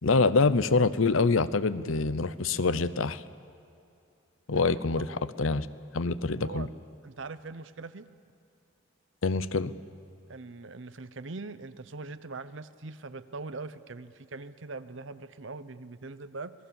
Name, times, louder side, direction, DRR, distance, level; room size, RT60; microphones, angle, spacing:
voice 1, 0.0-3.2 4.5-5.7 5.9-6.7 9.2-9.7, left 3 dB, 85° left, 15 dB, 0.8 m, -25 dB
voice 2, 4.5-5.0 6.4-6.7 7.0-8.1 10.3-16.5, right 3 dB, 70° right, 13 dB, 0.8 m, -42 dB
26.5 x 19.5 x 7.1 m, 2.7 s
head